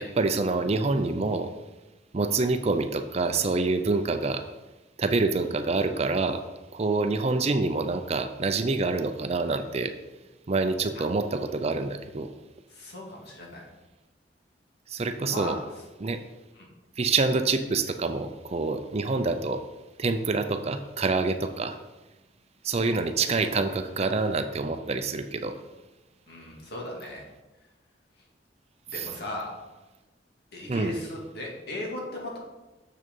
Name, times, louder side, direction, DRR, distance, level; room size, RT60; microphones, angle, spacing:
voice 1, 0.0-1.5 2.1-4.4 5.0-6.4 6.7-9.9 10.5-12.3 14.9-15.5 16.0-16.2 17.0-19.6 20.0-21.8 22.6-25.5 30.7-30.9, right 3 dB, 35° right, 9 dB, 0.5 m, -26 dB
voice 2, 12.7-13.6 15.3-15.7 16.5-16.7 23.3-23.8 26.3-27.2 28.9-29.6 30.5-32.4, left 1 dB, 65° left, -2 dB, 2.2 m, -37 dB
6.7 x 6.2 x 5.3 m, 1.1 s
head